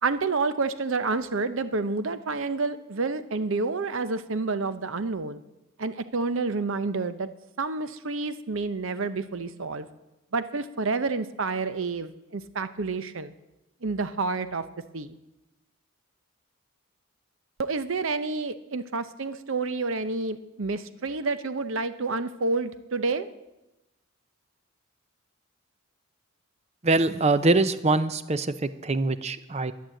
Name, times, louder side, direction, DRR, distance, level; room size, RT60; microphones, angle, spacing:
voice 1, 0.0-5.4 5.8-7.3 7.6-9.9 10.3-13.3 13.8-14.6 14.9-15.2 17.6-23.3, right 3 dB, 60° right, 12 dB, 0.7 m, -29 dB
voice 2, 26.8-29.7, right 2 dB, 30° right, 13 dB, 0.6 m, -23 dB
12.0 x 10.0 x 7.6 m, 0.98 s
head